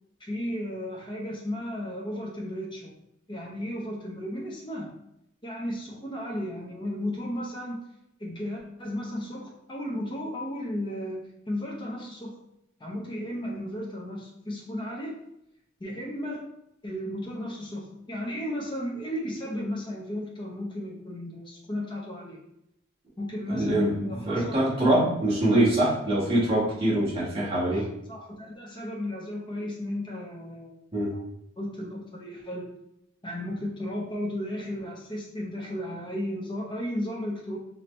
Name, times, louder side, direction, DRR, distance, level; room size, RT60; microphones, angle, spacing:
voice 1, 0.2-2.9 3.3-4.9 5.4-7.8 8.2-12.3 12.8-15.1 15.8-16.4 16.8-22.4 23.2-24.6 27.6-30.8 31.6-32.6 33.2-37.6, left 1 dB, 25° left, -3 dB, 0.7 m, -34 dB
voice 2, 23.5-23.9 24.2-27.9 30.9-31.1, right 1 dB, 30° right, -7 dB, 1.5 m, -24 dB
4.2 x 2.8 x 3.2 m, 0.81 s
head